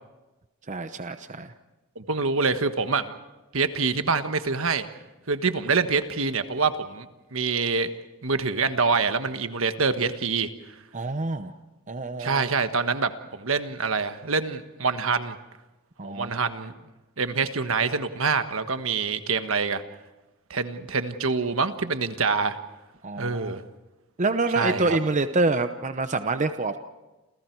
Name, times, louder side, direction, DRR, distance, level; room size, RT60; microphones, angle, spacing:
voice 1, 0.7-1.5 10.9-11.5 11.9-12.5 16.0-16.4 23.0-23.6 24.2-26.8, right 3 dB, 35° right, 9 dB, 0.9 m, -27 dB
voice 2, 1.9-3.1 3.5-4.9 5.3-7.9 8.2-10.5 12.2-15.3 16.0-16.7 17.2-19.8 20.5-22.6 23.2-23.6 24.5-25.0, right 4 dB, 70° right, 9 dB, 1.5 m, -26 dB
29.5 x 28.0 x 4.7 m, 1.1 s
head